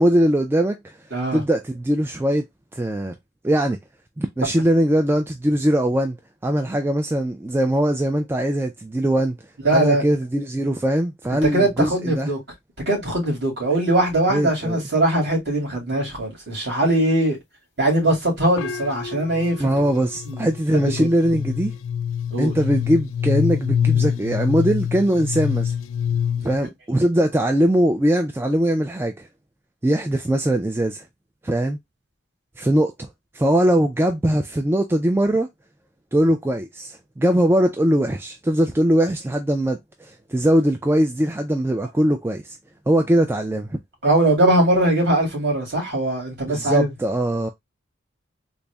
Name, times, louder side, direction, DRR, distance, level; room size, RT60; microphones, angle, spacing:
voice 1, 0.0-1.0 1.3-2.5 2.7-3.1 3.4-3.8 4.2-6.2 6.4-9.4 9.7-12.3 14.3-14.8 19.6-21.7 22.4-25.7 26.4-29.3 29.8-31.0 31.4-31.8 32.6-33.1 33.3-35.5 36.1-42.6 42.9-43.8 46.5-47.5, right 1 dB, 10° right, 0.3 m, -21 dB
voice 2, 1.1-1.4 9.6-10.0 11.3-12.4 12.9-17.4 17.8-19.7 20.3-20.4 21.0-21.1 22.3-22.5 44.0-46.9, right 1 dB, 55° right, 2.3 m, -21 dB
sound 1, 18.6-26.6, left 8 dB, 80° left, 0.3 m, -25 dB
4.0 x 2.0 x 3.3 m
head